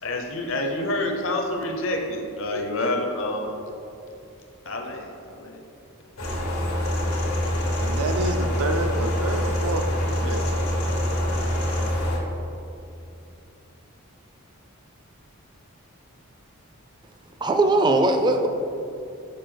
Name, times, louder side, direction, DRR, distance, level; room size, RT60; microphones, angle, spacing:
voice 1, 0.0-3.6 4.6-5.6, left 1 dB, 60° left, 2 dB, 0.8 m, -28 dB
sound 1, 6.2-12.2, equal, 90° left, 1.5 m, -25 dB
voice 2, 7.8-10.6, right 2 dB, 90° right, 7 dB, 0.5 m, -29 dB
voice 3, 17.4-18.5, right 2 dB, 20° right, 6 dB, 0.3 m, -19 dB
6.5 x 5.2 x 3.8 m, 2.7 s
head